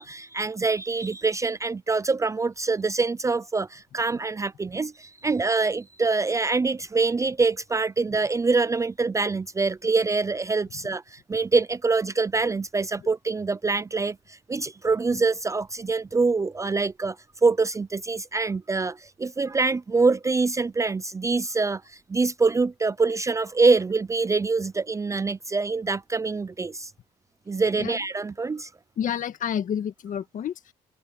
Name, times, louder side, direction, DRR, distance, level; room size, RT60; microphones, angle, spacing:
voice 1, 0.0-17.2 17.4-26.9 27.5-28.7, right 4 dB, 20° right, 0.5 m, -25 dB
voice 2, 29.0-30.7, left 9 dB, 50° left, 1.7 m, -29 dB
open air
cardioid pair, 110°, 17 cm